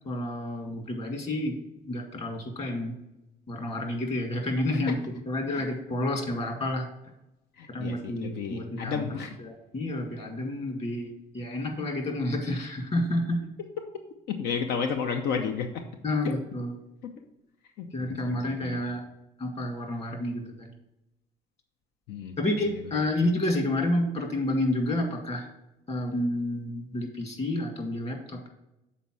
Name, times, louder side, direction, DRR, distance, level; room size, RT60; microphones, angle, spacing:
voice 1, 0.0-1.6 1.8-3.0 3.5-5.0 5.3-6.9 7.7-9.0 9.4-13.4 16.0-16.8 17.9-19.0 19.4-20.7 22.4-25.5 25.9-28.5, left 1 dB, 40° left, 3 dB, 1.9 m, -29 dB
voice 2, 7.6-9.3 14.3-15.8 16.2-16.4 17.0-17.1 17.8-18.8 22.1-22.4 22.7-22.8, left 6 dB, 80° left, 5 dB, 0.7 m, -32 dB
6.8 x 4.3 x 6.1 m, 0.91 s
cardioid pair, 110°, 17 cm